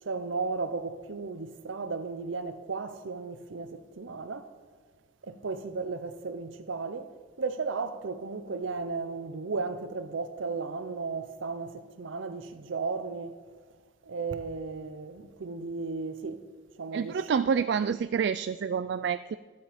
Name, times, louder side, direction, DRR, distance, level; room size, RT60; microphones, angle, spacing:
voice 1, 0.0-4.5 5.2-7.1 7.4-13.4 14.0-16.4 16.8-17.4, right 4 dB, 90° right, 0.7 m, -35 dB
voice 2, 16.9-19.4, right 6 dB, 60° right, 0.3 m, -28 dB
15.0 x 9.3 x 5.0 m
head